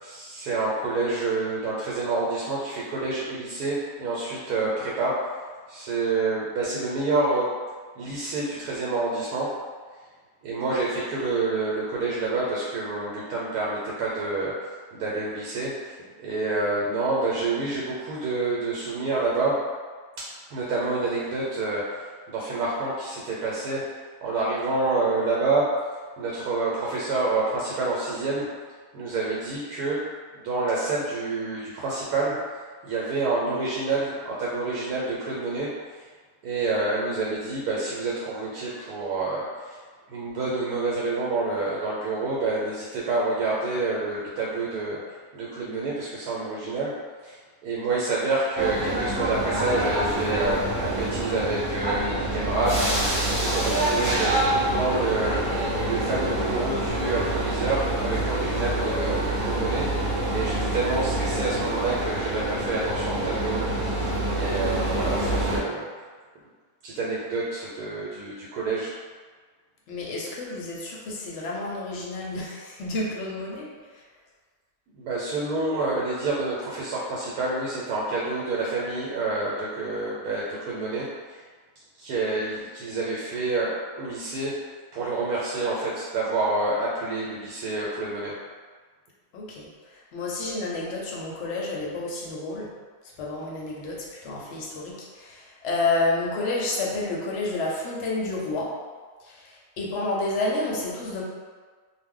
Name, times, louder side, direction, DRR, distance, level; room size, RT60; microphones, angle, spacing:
voice 1, 0.0-5.2 5.7-7.5 8.0-9.5 10.4-14.5 14.9-15.9 16.2-19.6 20.2-20.3 20.5-23.8 24.2-25.7 26.2-28.5 28.9-30.0 30.3-32.4 32.8-35.7 35.9-36.1 36.4-39.8 40.1-45.0 45.3-46.9 47.2-59.9 60.3-64.1 64.3-65.9 66.8-68.9 74.9-81.4 82.0-84.5 84.9-88.3, right 3 dB, 85° right, -5 dB, 1.1 m, -28 dB
sound 1, 48.5-65.6, right 1 dB, 45° right, 0.9 m, -26 dB
voice 2, 69.9-74.0 89.3-92.7 93.2-98.7 99.2-101.2, left 2 dB, 60° left, -4 dB, 0.8 m, -30 dB
2.5 x 2.1 x 3.6 m, 1.5 s
omnidirectional pair, 1.6 m